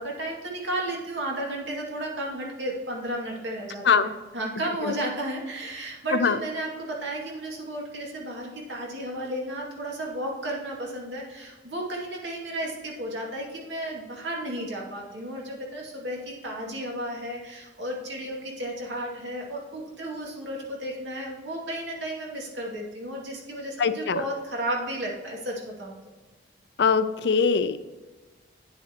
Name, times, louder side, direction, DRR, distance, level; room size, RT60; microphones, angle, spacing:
voice 1, 0.0-26.0, right 1 dB, 80° right, -2 dB, 2.3 m, -33 dB
voice 2, 23.8-24.2 26.8-27.8, left 5 dB, 65° left, 12 dB, 0.5 m, -22 dB
9.7 x 7.2 x 2.9 m, 1.3 s
head